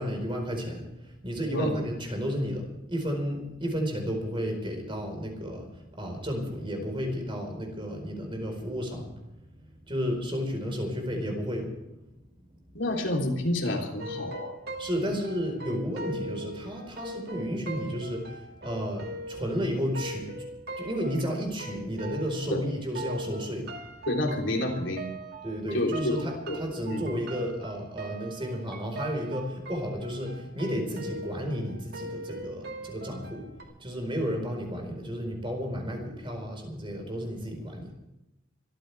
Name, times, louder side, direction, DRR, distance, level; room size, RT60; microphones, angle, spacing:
voice 1, 0.0-9.1 9.6-11.7 14.8-20.3 20.8-23.7 25.4-26.3 26.6-33.4 33.8-37.9, equal, 25° right, 3 dB, 4.6 m, -32 dB
voice 2, 12.8-14.6 22.5-22.6 24.1-25.1 25.7-26.1 26.5-26.6 26.9-27.0, left 1 dB, 70° left, 0 dB, 3.5 m, -29 dB
sound 1, 14.0-22.7 22.9-33.6, right 2 dB, 50° right, 2.4 m, -40 dB
24.5 x 14.5 x 3.5 m, 0.93 s
head